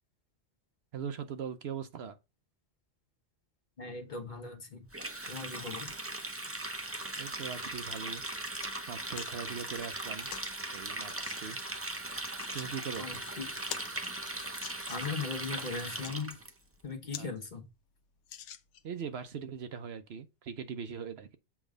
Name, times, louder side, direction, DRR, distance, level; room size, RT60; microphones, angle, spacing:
voice 1, 0.9-2.2 7.2-8.2 8.9-10.3 10.7-11.1 11.4-11.6 12.5-13.1 17.2-17.3 18.8-21.4, right 7 dB, 65° right, 0.9 m, -40 dB
voice 2, 3.8-4.9 5.3-5.9 13.0-13.6 14.9-16.4 16.8-17.7, left 4 dB, 45° left, 1.3 m, -39 dB
Water tap faucet, 4.9-16.5, right 2 dB, 15° right, 0.6 m, -39 dB
sound 1, 8.6-8.7 9.1-9.4 10.3-10.5 11.2-11.4 12.2-12.7 13.1-13.2 13.5-15.2 15.8-16.1 16.7-16.8 17.1-17.3 17.6-17.7 18.2-19.0 19.6-19.7, left 10 dB, 90° left, 0.9 m, -45 dB
7.3 x 3.1 x 5.0 m
omnidirectional pair, 1.2 m